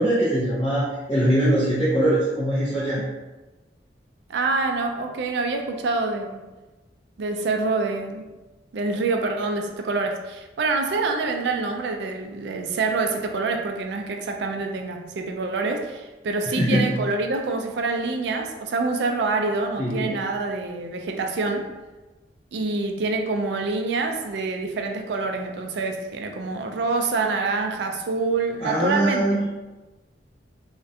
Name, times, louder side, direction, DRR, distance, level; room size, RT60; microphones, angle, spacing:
voice 1, 0.0-3.0 16.6-16.9 19.8-20.2 28.6-29.4, right 1 dB, 30° left, -10 dB, 0.6 m, -22 dB
voice 2, 4.3-6.4 7.2-8.2 8.7-21.7 22.5-29.5, right 3 dB, 70° right, 4 dB, 0.3 m, -26 dB
2.4 x 2.1 x 2.6 m, 1.1 s
head